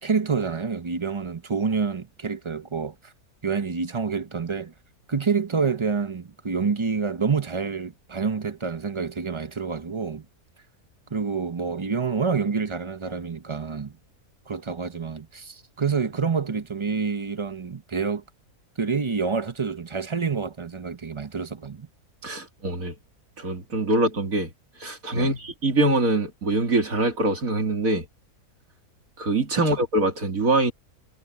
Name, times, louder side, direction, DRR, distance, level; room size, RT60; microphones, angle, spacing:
voice 1, 0.0-3.1 3.4-4.7 5.1-10.2 11.1-13.9 14.5-18.2 18.8-21.9 25.1-25.3 29.7-29.8, right 5 dB, 30° right, 0.5 m, -27 dB
voice 2, 22.2-22.9 23.4-24.5 24.8-28.1 29.2-30.7, right 2 dB, 65° right, 3.3 m, -24 dB
omnidirectional pair, 1.6 m